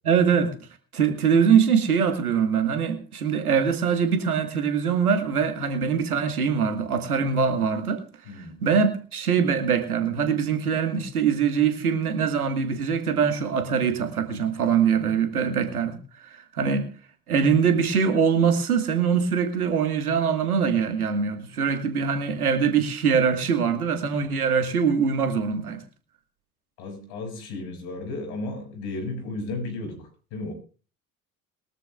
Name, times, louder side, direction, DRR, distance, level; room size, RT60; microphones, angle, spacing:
voice 1, 0.0-0.5 0.9-8.0 8.6-16.9 17.3-25.8, right 6 dB, 85° right, 7 dB, 1.8 m, -23 dB
voice 2, 8.3-8.6 26.8-30.5, left 2 dB, 65° left, 4 dB, 5.8 m, -34 dB
22.0 x 13.0 x 2.4 m, 0.36 s
figure-of-eight pair, 55°, 43 cm